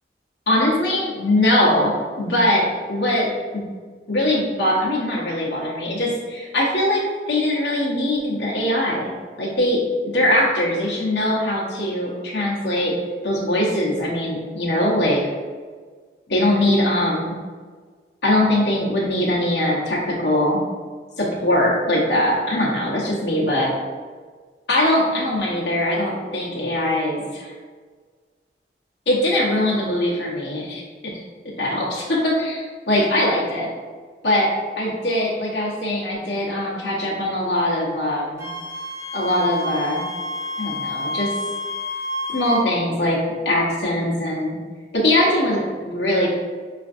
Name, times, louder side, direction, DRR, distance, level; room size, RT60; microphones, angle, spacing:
voice 1, 0.5-3.3 3.5-3.6 4.1-7.0 7.3-9.1 9.4-9.8 10.1-12.9 13.2-15.2 16.3-17.3 18.2-20.6 21.2-23.7 24.7-27.5 29.1-30.8 31.6-33.7 34.2-34.5 34.8-38.5 39.1-40.0 40.6-41.3 42.3-44.5 44.9-46.3, left 1 dB, 65° left, -5 dB, 0.8 m, -21 dB
Wind instrument woodwind instrument, 38.4-42.7, left 1 dB, 15° right, 0.5 m, -29 dB
5.6 x 2.5 x 2.5 m, 1.5 s
head